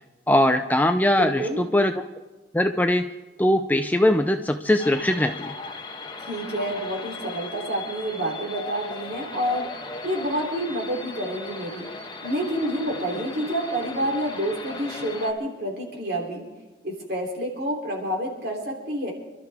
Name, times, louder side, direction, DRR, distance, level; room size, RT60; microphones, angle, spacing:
voice 1, 0.3-1.9 2.5-3.1 3.4-5.6, left 1 dB, 10° left, 7 dB, 0.4 m, -21 dB
voice 2, 1.1-1.6 6.2-9.7 10.0-11.9 12.2-16.4 16.8-19.1, equal, 55° right, 0 dB, 3.3 m, -28 dB
sound 1, 4.8-15.3, left 3 dB, 25° left, 1.1 m, -37 dB
26.5 x 12.5 x 3.5 m, 1.2 s
head